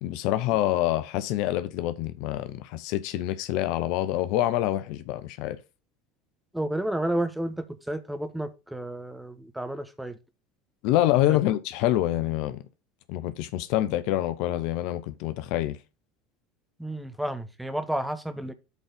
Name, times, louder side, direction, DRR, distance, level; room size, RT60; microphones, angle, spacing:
voice 1, 0.0-5.6 10.8-12.6 13.1-15.8, left 14 dB, 60° left, 0.6 m, -26 dB
voice 2, 6.5-10.2 16.8-18.5, right 1 dB, 5° right, 1.2 m, -31 dB
8.2 x 3.9 x 5.3 m
figure-of-eight pair, 75°, 0 cm